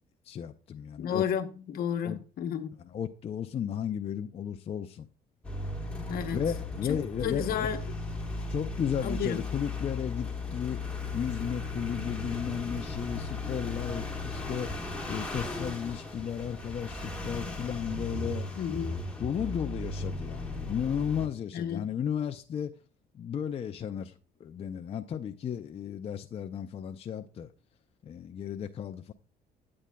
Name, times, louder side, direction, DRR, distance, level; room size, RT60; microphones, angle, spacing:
voice 1, 0.2-1.2 2.0-2.2 2.8-5.1 6.3-7.7 8.5-18.5 19.2-22.8 23.1-27.5 28.0-29.1, left 8 dB, 35° left, 0.4 m, -34 dB
voice 2, 1.0-2.7 6.1-6.4 6.9-7.8 9.0-9.4 18.6-19.0 21.5-21.9, left 8 dB, 60° left, 0.9 m, -32 dB
sound 1, 5.4-21.3, left 2 dB, 5° left, 1.6 m, -36 dB
9.1 x 8.7 x 2.2 m
cardioid pair, 110°, 17 cm